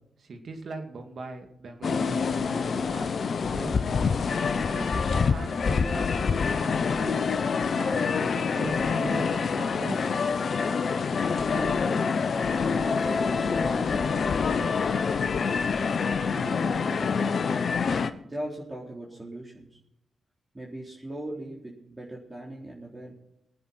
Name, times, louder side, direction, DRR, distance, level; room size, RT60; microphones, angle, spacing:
voice 1, 0.2-4.0 4.3-7.2 7.7-10.0, right 3 dB, 65° right, 4 dB, 2.5 m, -40 dB
sound 1, 1.8-18.1, left 5 dB, 60° left, 0.9 m, -26 dB
voice 2, 11.4-11.8 12.5-15.1 16.2-17.6 18.2-19.7 20.5-23.1, right 1 dB, 30° right, -3 dB, 4.0 m, -40 dB
21.5 x 9.3 x 4.5 m, 0.79 s
supercardioid pair, 40°, 0 cm